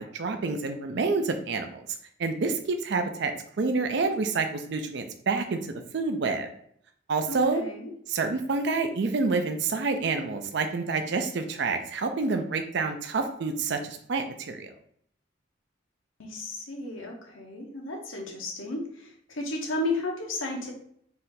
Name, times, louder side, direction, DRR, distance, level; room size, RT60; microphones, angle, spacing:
voice 1, 0.0-1.8 2.2-6.5 7.1-7.6 8.1-14.7, right 4 dB, 60° right, 7 dB, 0.4 m, -28 dB
voice 2, 7.3-7.9 16.2-20.7, left 2 dB, 90° left, 1 dB, 1.0 m, -33 dB
4.2 x 2.7 x 3.8 m, 0.64 s
head